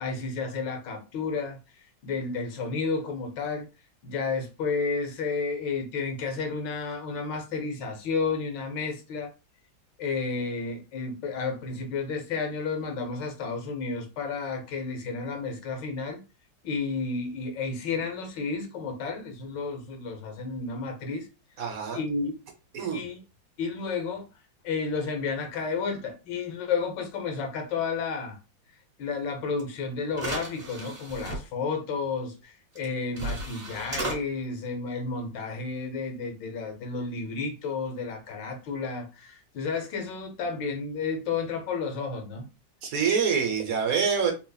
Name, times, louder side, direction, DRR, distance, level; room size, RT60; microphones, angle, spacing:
voice 1, 0.0-1.6 2.0-3.7 4.0-9.3 10.0-16.2 16.6-21.3 21.9-22.3 22.9-23.2 23.6-24.3 24.6-28.4 29.0-42.4, left 4 dB, 70° left, 1.4 m, -31 dB
voice 2, 21.6-22.0 22.7-23.0 42.8-44.3, right 6 dB, 60° right, 0.9 m, -26 dB
sound 1, 29.6-29.7 30.1-31.4 32.7-32.8 33.1-34.2, right 1 dB, 30° right, 1.0 m, -34 dB
3.9 x 2.9 x 2.3 m
omnidirectional pair, 2.1 m